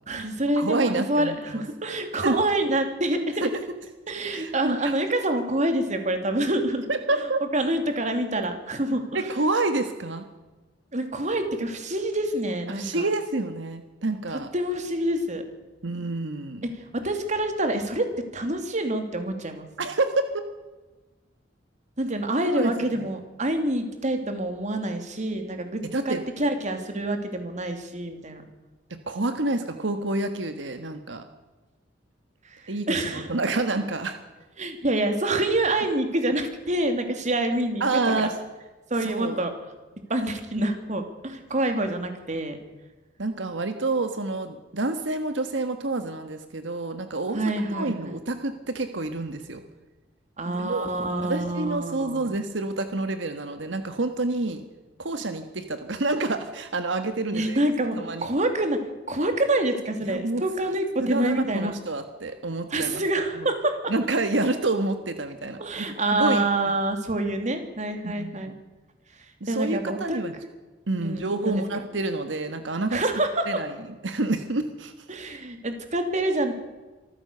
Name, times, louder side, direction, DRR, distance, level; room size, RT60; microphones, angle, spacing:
voice 1, 0.1-3.5 4.1-6.9 7.5-9.2 10.9-13.1 14.5-15.4 16.7-18.1 18.3-19.7 22.0-28.4 32.5-32.6 32.9-33.3 34.6-38.3 38.9-39.5 40.1-42.6 47.3-48.2 50.4-52.4 57.3-58.8 59.1-61.7 62.7-63.9 65.6-68.5 69.5-70.2 71.0-71.6 72.9-73.5 75.1-76.5, right 1 dB, 40° right, 6 dB, 2.9 m, -27 dB
voice 2, 0.6-1.6 2.2-2.4 3.4-3.6 4.3-4.9 6.9-7.4 8.4-8.5 9.1-10.2 12.7-14.5 15.8-16.6 19.8-20.4 22.5-23.0 25.8-26.2 28.9-31.2 32.7-34.2 37.8-38.3 39.0-39.4 43.2-47.4 47.7-49.6 50.4-54.6 55.0-57.6 57.9-58.3 60.1-60.4 61.0-63.0 63.3-63.5 63.9-66.5 68.0-68.5 69.4-70.3 70.9-73.0 73.5-73.7 74.0-74.9, right 2 dB, 85° right, 8 dB, 1.5 m, -28 dB
25.0 x 15.0 x 6.9 m, 1.2 s
head